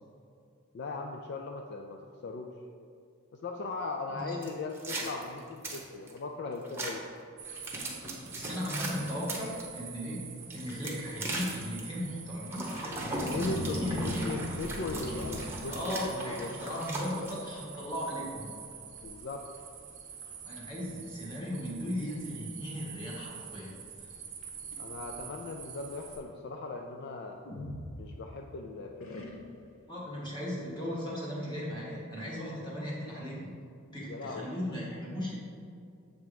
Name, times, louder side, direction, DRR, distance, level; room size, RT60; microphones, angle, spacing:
voice 1, 0.7-2.5 3.4-7.0 13.0-16.6 19.0-19.5 24.8-27.4 28.0-29.3 34.1-34.5, left 3 dB, 55° left, 2 dB, 0.4 m, -39 dB
sound 1, 4.4-6.2 6.6-6.9 7.4-9.6 10.4-11.8 12.4-17.3, right 2 dB, 10° right, 1.0 m, -38 dB
sound 2, 7.4-26.2, right 7 dB, 35° right, 0.7 m, -46 dB
voice 2, 8.3-14.3 15.7-18.5 20.4-23.8 29.9-33.5 33.9-35.3, equal, 20° left, -6 dB, 1.7 m, -37 dB
monster roar and eat, 12.9-16.2 16.8-17.1 17.4-17.8 18.1-18.2 19.0-19.1 19.6-19.7 20.2-20.7 21.5-21.6 24.4-25.4 27.4-28.5 29.0-29.7, left 1 dB, 75° left, 0.9 m, -40 dB
7.4 x 3.5 x 5.0 m, 2.4 s
head